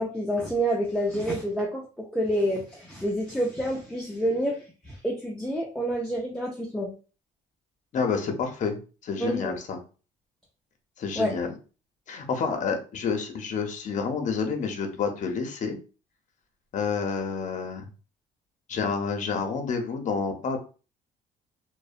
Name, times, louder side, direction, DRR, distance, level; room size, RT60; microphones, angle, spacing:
voice 1, 0.0-6.9 9.2-9.5 11.2-11.3, equal, 5° left, -2 dB, 0.4 m, -28 dB
voice 2, 7.9-9.8 11.0-11.5 12.1-15.8 16.7-17.9 18.7-20.6, left 5 dB, 45° left, 4 dB, 0.6 m, -29 dB
2.6 x 2.1 x 2.4 m, 0.35 s
cardioid pair, 110°, 17 cm